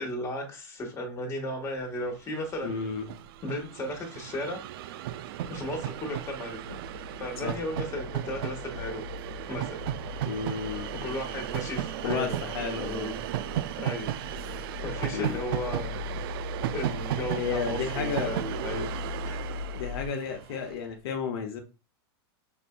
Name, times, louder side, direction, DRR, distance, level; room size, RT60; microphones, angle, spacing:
voice 1, 0.0-2.9 3.4-4.6 5.5-6.6 7.2-9.0 9.5-10.0 11.0-12.5 12.8-13.2 13.8-14.1 14.8-15.9 16.7-18.9 19.2-19.4, left 1 dB, 20° left, 1 dB, 1.5 m, -35 dB
Train, 2.1-2.2 2.4-20.8, right 12 dB, 60° right, 0.4 m, -35 dB
voice 2, 2.6-3.1 7.4-7.6 10.2-10.9 12.0-13.1 15.1-15.4 17.4-18.3 19.7-21.6, left 6 dB, 65° left, 3 dB, 0.9 m, -32 dB
sound 1, 5.4-20.1, left 4 dB, 80° right, 1.2 m, -40 dB
5.9 x 2.6 x 2.2 m, 0.30 s
hypercardioid pair, 135°, 14 cm